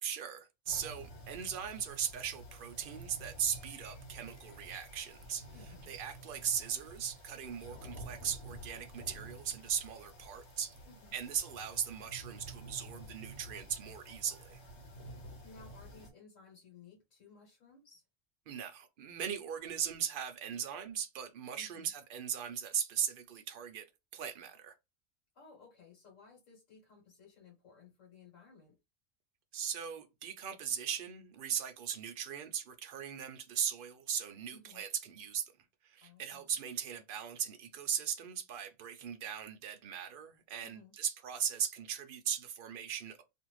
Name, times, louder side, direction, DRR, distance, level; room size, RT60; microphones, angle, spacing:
voice 1, 0.0-5.5 5.9-10.8 11.1-14.6 18.5-23.9 24.1-24.7 29.5-35.5 35.8-43.2, right 8 dB, 60° right, 0.6 m, -38 dB
sound 1, 0.7-16.1, right 1 dB, 65° left, 1.2 m, -50 dB
voice 2, 5.5-5.9 10.8-11.1 15.4-18.0 21.5-21.9 25.3-28.8 34.5-34.8 36.0-36.5 40.6-40.9, left 4 dB, 85° left, 1.5 m, -58 dB
2.5 x 2.5 x 3.0 m
omnidirectional pair, 1.3 m